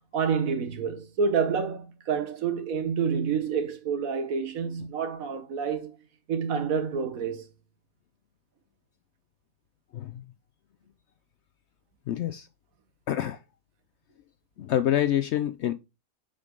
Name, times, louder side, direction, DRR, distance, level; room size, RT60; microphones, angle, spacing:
voice 1, 0.1-5.9 6.3-7.5, right 6 dB, 70° right, 1.4 m, -28 dB
voice 2, 9.9-10.2 12.1-12.5 13.1-13.4 14.6-15.7, left 11 dB, 65° left, 0.7 m, -27 dB
6.2 x 5.2 x 3.7 m
omnidirectional pair, 1.5 m